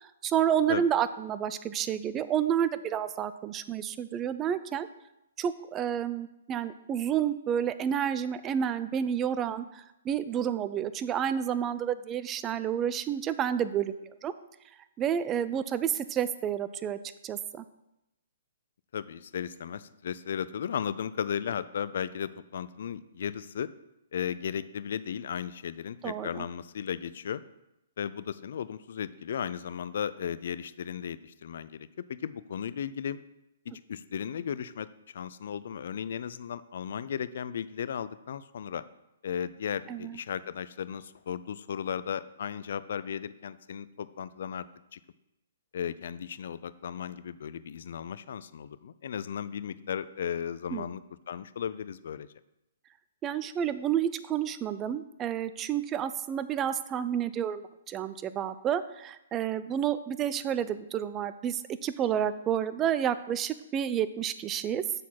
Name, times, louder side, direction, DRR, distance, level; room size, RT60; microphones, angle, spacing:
voice 1, 0.0-4.9 5.4-13.9 14.2-14.3 15.0-17.6 26.0-26.5 39.9-40.2 50.7-50.8 53.2-64.8, right 9 dB, 20° right, 13 dB, 0.4 m, -30 dB
voice 2, 18.9-23.7 24.1-27.4 28.0-33.2 33.7-34.9 35.1-38.8 39.2-44.7 44.9-45.0 45.7-52.3, left 8 dB, 65° left, 16 dB, 0.3 m, -35 dB
6.5 x 4.1 x 5.8 m, 0.89 s
hypercardioid pair, 135°, 0 cm